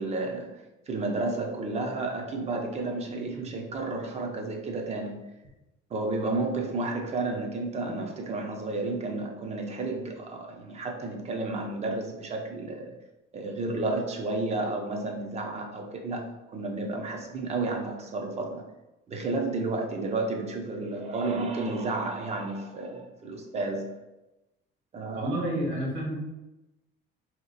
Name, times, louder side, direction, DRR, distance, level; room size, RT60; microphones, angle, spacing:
voice 1, 0.0-5.3 5.9-12.9 13.3-18.6 19.1-23.9 24.9-25.4, right 2 dB, 30° right, 2 dB, 0.5 m, -32 dB
voice 2, 25.2-26.1, right 1 dB, 70° right, -3 dB, 1.4 m, -29 dB
2.9 x 2.3 x 3.9 m, 1.0 s
cardioid pair, 135°, 21 cm